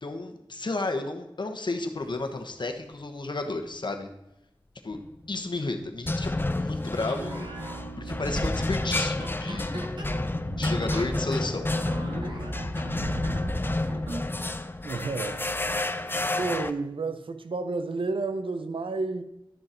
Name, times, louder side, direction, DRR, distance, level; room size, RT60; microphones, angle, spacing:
voice 1, 0.0-4.1 4.8-5.0 5.3-7.4 8.0-9.8 10.6-11.7, left 2 dB, 60° left, 5 dB, 1.2 m, -32 dB
sound 1, 4.9-5.3 6.1-16.7, left 2 dB, 25° left, 0.6 m, -30 dB
sound 2, 7.0-14.3, right 1 dB, 65° right, 1.8 m, -37 dB
voice 2, 14.8-15.5 16.1-19.2, right 3 dB, 80° right, 9 dB, 0.7 m, -31 dB
11.5 x 6.5 x 4.4 m, 0.89 s
wide cardioid pair, 50°, 9 cm